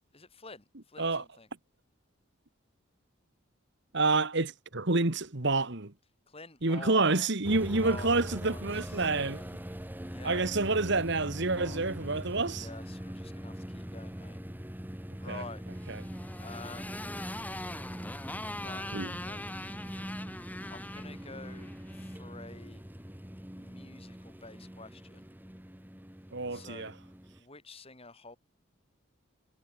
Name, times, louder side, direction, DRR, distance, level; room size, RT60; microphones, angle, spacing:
voice 1, 0.1-1.5 6.3-7.3 7.8-9.6 10.1-10.6 11.5-11.8 12.5-14.4 15.2-15.6 16.4-17.0 18.6-19.5 20.7-22.8 23.5-25.3 26.5-26.9 27.4-28.4, left 3 dB, 30° left, 6.5 m, -48 dB
voice 2, 3.9-5.9 6.6-9.4 10.2-12.7 15.3-15.4 18.9-19.1 26.3-26.9, right 3 dB, 60° right, 1.9 m, -28 dB
sound 1, 7.4-27.4, equal, 10° right, 1.6 m, -42 dB
Motorcycle, 15.7-22.2, left 1 dB, 10° left, 6.4 m, -42 dB
head